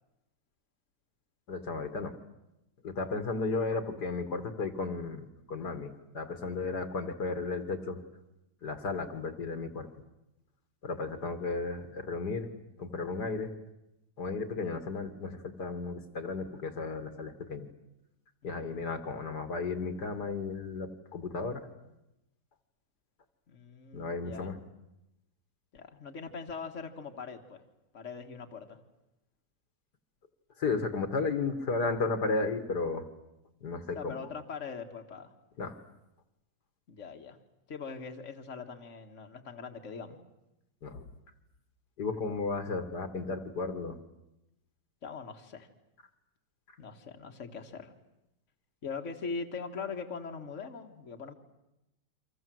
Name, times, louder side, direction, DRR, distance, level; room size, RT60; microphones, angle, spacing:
voice 1, 1.5-2.1 2.8-8.0 8.6-9.9 10.8-12.5 12.8-13.5 14.2-17.7 18.4-21.7 23.9-24.6 30.6-33.1 33.6-34.2 35.6-35.8 40.8-41.0 42.0-44.0, left 3 dB, 65° left, 9 dB, 2.3 m, -34 dB
voice 2, 23.5-24.5 25.7-27.6 27.9-28.8 33.9-35.3 36.9-37.4 37.7-40.2 45.0-45.7 46.8-47.9 48.8-51.3, left 5 dB, 45° left, 3 dB, 2.1 m, -41 dB
29.5 x 24.5 x 7.8 m, 0.91 s
omnidirectional pair, 1.9 m